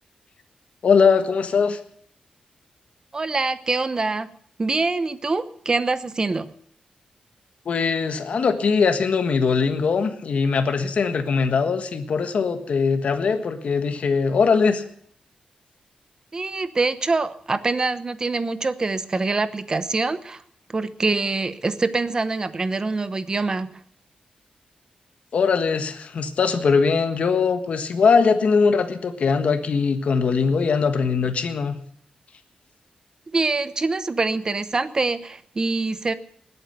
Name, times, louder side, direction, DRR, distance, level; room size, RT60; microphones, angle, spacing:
voice 1, 0.8-1.8 7.6-14.8 25.3-31.8, left 5 dB, 70° left, 7 dB, 1.5 m, -21 dB
voice 2, 3.1-4.3 4.6-6.5 16.3-20.4 20.7-23.7 33.3-36.1, right 3 dB, 30° right, 12 dB, 1.0 m, -24 dB
20.0 x 8.9 x 6.8 m, 0.62 s
wide cardioid pair, 140°, 2 cm